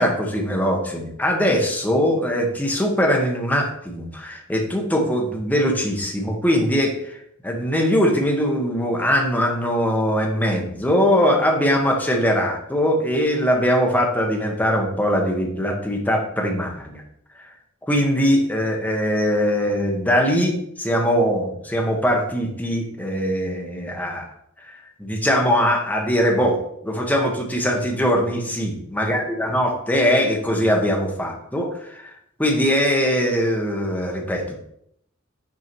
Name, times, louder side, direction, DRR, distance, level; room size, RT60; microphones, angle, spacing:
voice 1, 0.0-7.2 7.4-17.0 17.9-24.3 25.0-32.1 32.4-34.6, equal, 10° left, 1 dB, 1.2 m, -21 dB
6.4 x 4.7 x 4.5 m, 0.73 s
head